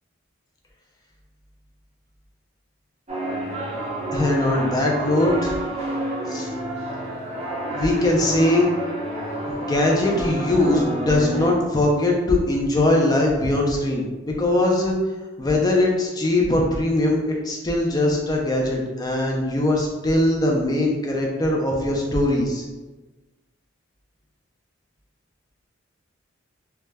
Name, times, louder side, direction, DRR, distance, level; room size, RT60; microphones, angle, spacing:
sound 1, 3.1-11.5, right 1 dB, 30° right, 0.6 m, -29 dB
voice 1, 4.1-5.5 6.3-6.5 7.7-8.7 9.5-15.0 15.4-22.6, left 1 dB, 20° left, -1 dB, 0.4 m, -21 dB
2.2 x 2.0 x 3.3 m, 1.2 s
head